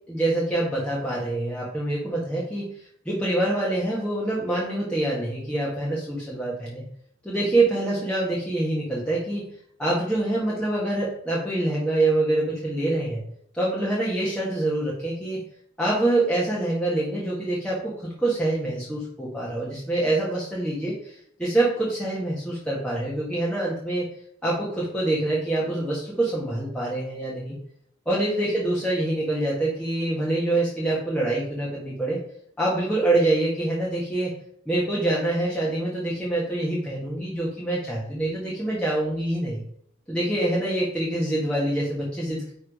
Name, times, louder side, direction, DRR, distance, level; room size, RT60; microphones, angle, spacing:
voice 1, 0.1-2.7 3.0-6.8 7.2-9.4 9.8-13.2 13.5-15.4 15.8-17.9 18.2-24.0 24.4-27.5 28.0-32.2 32.6-34.3 34.7-39.6 40.1-42.5, right 2 dB, 5° left, -6 dB, 1.5 m, -25 dB
9.6 x 3.7 x 5.0 m, 0.67 s
head